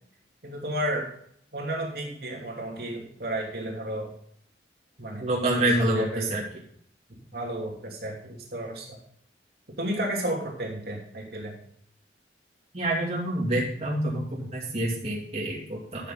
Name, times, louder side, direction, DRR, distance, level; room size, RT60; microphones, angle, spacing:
voice 1, 0.4-1.1 1.5-4.1 5.0-5.3 5.6-6.3 7.1-9.0 9.8-11.6, right 1 dB, 55° right, -1 dB, 2.9 m, -32 dB
voice 2, 5.2-6.4 12.7-16.1, right 1 dB, 35° right, -4 dB, 2.7 m, -27 dB
13.0 x 6.8 x 3.9 m, 0.65 s
head